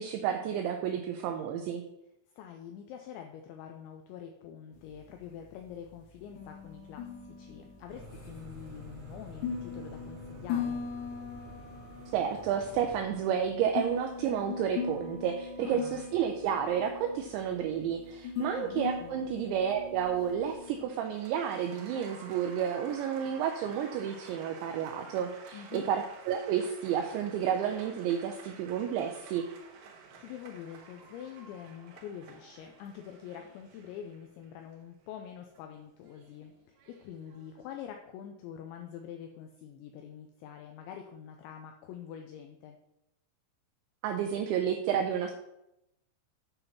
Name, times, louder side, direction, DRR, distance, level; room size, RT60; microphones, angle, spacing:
voice 1, 0.0-1.8 12.1-29.5 44.0-45.3, right 8 dB, 90° right, 5 dB, 2.6 m, -31 dB
voice 2, 2.3-10.8 15.6-16.1 18.5-19.3 25.5-25.9 30.2-42.8, left 9 dB, 90° left, 4 dB, 2.6 m, -45 dB
sound 1, 4.8-20.8, left 6 dB, 70° left, 3.0 m, -40 dB
sound 2, 7.9-13.0, equal, 45° right, 1.9 m, -48 dB
Applause, 20.5-37.7, right 5 dB, 75° right, 2.9 m, -53 dB
8.9 x 4.0 x 5.8 m, 0.86 s
omnidirectional pair, 5.8 m